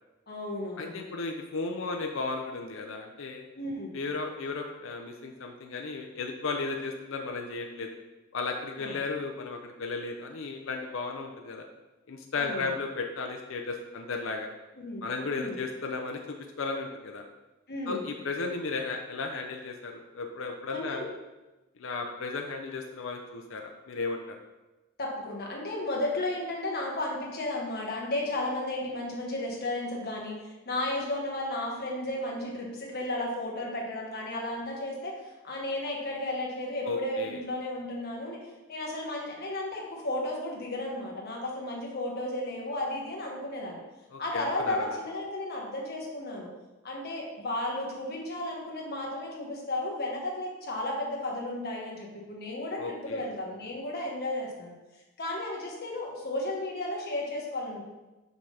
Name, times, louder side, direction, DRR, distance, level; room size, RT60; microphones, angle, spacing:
voice 1, 0.3-1.0 3.5-3.9 8.8-9.0 12.3-12.7 14.8-15.0 15.3-15.6 17.7-18.0 20.7-21.1 25.0-43.8 44.2-46.5 46.8-54.7 55.2-57.8, left 1 dB, 50° left, -2 dB, 1.4 m, -34 dB
voice 2, 0.8-3.4 3.9-7.9 8.3-11.6 12.1-14.5 15.0-17.2 17.9-21.1 21.8-24.4 36.9-37.4 44.1-44.9 52.8-53.3, left 3 dB, 70° left, 3 dB, 0.6 m, -35 dB
5.9 x 5.4 x 3.4 m, 1.1 s
head